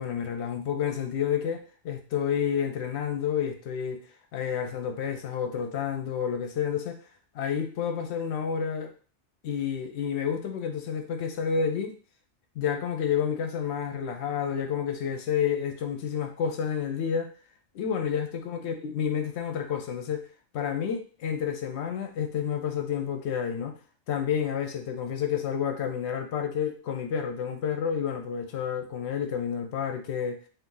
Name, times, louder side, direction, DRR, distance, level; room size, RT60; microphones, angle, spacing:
voice 1, 0.0-4.0 4.3-7.0 7.3-8.9 9.4-11.9 12.6-17.3 17.7-20.3 20.5-23.7 24.1-30.4, left 7 dB, 70° left, 5 dB, 0.8 m, -30 dB
2.6 x 2.5 x 3.7 m, 0.39 s
omnidirectional pair, 1.2 m